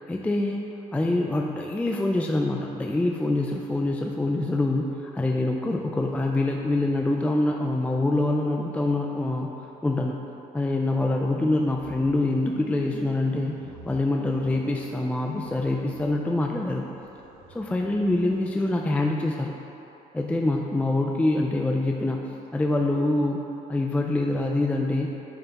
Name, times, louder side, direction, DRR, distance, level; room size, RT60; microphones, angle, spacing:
voice 1, 0.0-9.5 9.8-10.2 10.5-13.6 13.9-16.8 17.5-19.5 20.1-22.2 22.5-25.1, left 2 dB, 10° left, 1 dB, 0.3 m, -25 dB
sound 1, 11.7-18.9, right 2 dB, 60° right, 1.3 m, -48 dB
9.4 x 3.4 x 4.0 m, 3.0 s
cardioid pair, 110°, 17 cm